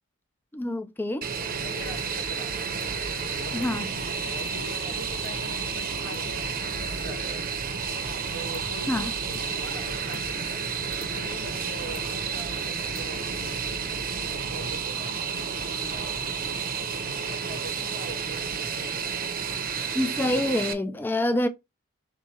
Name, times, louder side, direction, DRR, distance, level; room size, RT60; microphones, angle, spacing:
voice 1, 0.5-1.3 3.5-3.9 8.9-9.1 19.9-21.5, left 1 dB, 10° left, 0.3 m, -26 dB
Fixed-wing aircraft airplane, 1.2-20.7, right 6 dB, 40° right, 0.7 m, -31 dB
sound 1, 1.5-14.8, left 1 dB, 50° left, 0.7 m, -43 dB
voice 2, 1.6-2.6 3.3-3.7 4.2-7.6 8.3-10.6 11.0-16.7 17.2-19.4, left 1 dB, 90° left, 1.8 m, -43 dB
3.5 x 3.0 x 4.6 m
head